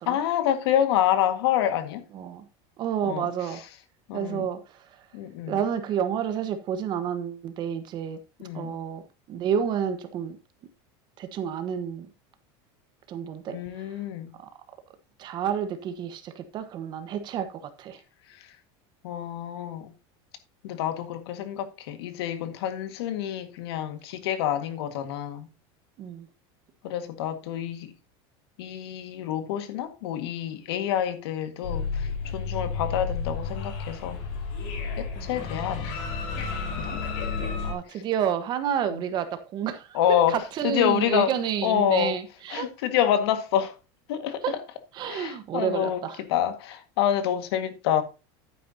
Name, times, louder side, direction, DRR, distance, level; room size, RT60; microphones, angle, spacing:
voice 1, 0.0-2.0 3.0-3.3 4.1-4.5 5.1-5.6 8.4-8.8 13.5-14.3 19.0-19.9 20.6-25.5 26.8-27.9 28.6-34.2 35.0-36.1 36.8-37.0 39.9-40.4 40.6-41.3 41.6-42.1 42.5-43.7 44.1-44.4 45.0-46.0 46.3-48.0, left 10 dB, 85° left, 1.7 m, -27 dB
voice 2, 2.1-2.5 2.8-3.6 4.1-5.1 5.5-8.2 8.5-9.0 9.3-10.4 11.2-12.1 13.1-14.0 14.4-14.5 15.2-18.0 26.0-26.3 35.2-35.3 37.6-42.7 44.4-44.6 44.9-46.2, right 8 dB, 35° right, 1.2 m, -30 dB
sound 1, 31.6-37.7, left 4 dB, 65° left, 4.3 m, -31 dB
11.0 x 9.3 x 2.8 m
supercardioid pair, 160°, 13 cm